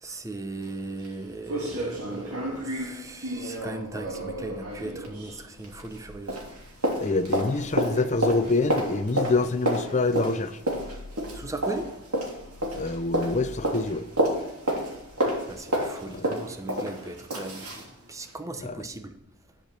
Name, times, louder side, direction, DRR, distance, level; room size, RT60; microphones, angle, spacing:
voice 1, 0.0-6.4 11.3-11.9 15.5-19.1, right 2 dB, 15° right, 0.7 m, -37 dB
sound 1, 0.6-0.7 1.0-1.1 1.5-6.0 6.3-17.9 18.3-18.4, right 1 dB, 80° right, 2.7 m, -30 dB
voice 2, 7.0-10.6 12.7-14.1 16.1-16.3 18.6-18.8, left 3 dB, 30° left, 0.5 m, -26 dB
11.5 x 5.1 x 5.9 m
head